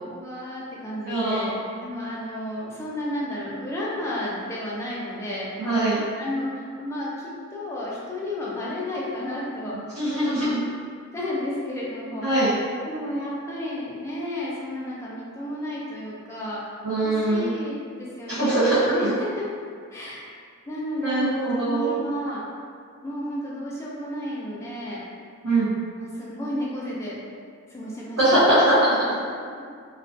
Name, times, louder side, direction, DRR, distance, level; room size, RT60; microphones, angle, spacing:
voice 1, 0.0-1.5 1.8-5.5 6.2-7.1 7.5-9.8 10.2-10.5 11.1-16.6 17.0-18.6 18.8-19.4 19.9-20.2 20.7-22.4 23.0-25.0 26.0-27.2 27.7-28.5, left 1 dB, 15° left, -6 dB, 0.4 m, -32 dB
voice 2, 1.0-1.5 5.6-6.0 9.9-10.6 12.2-12.5 16.8-17.5 18.3-18.8 19.0-19.1 21.0-21.9 25.4-25.7 28.2-29.0, right 1 dB, 80° right, -12 dB, 0.7 m, -21 dB
2.4 x 2.2 x 2.4 m, 2.1 s
head